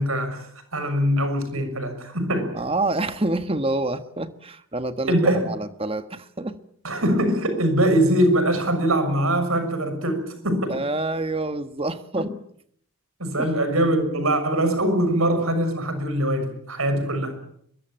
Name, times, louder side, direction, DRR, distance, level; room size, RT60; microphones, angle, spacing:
voice 1, 0.0-2.5 5.1-5.5 6.8-10.8 12.2-12.3 13.2-17.4, right 1 dB, 80° right, 6.5 m, -22 dB
voice 2, 2.5-6.6 10.7-12.3 13.4-13.5, right 2 dB, 25° right, 1.4 m, -27 dB
23.0 x 22.5 x 9.0 m
head